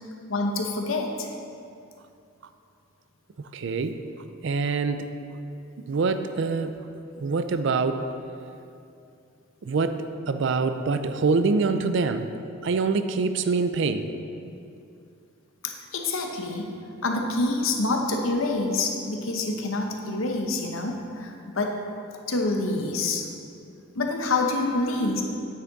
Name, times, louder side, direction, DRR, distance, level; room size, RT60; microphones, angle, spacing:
voice 1, 0.3-1.3 15.6-16.7 17.0-21.8 22.3-23.3 23.9-25.2, left 2 dB, 75° left, 3 dB, 0.9 m, -27 dB
voice 2, 3.5-4.0 4.4-5.1 5.8-6.8 7.2-8.1 9.6-12.3 12.6-14.1, right 4 dB, 60° right, 9 dB, 0.4 m, -25 dB
9.4 x 6.0 x 4.0 m, 2.5 s
head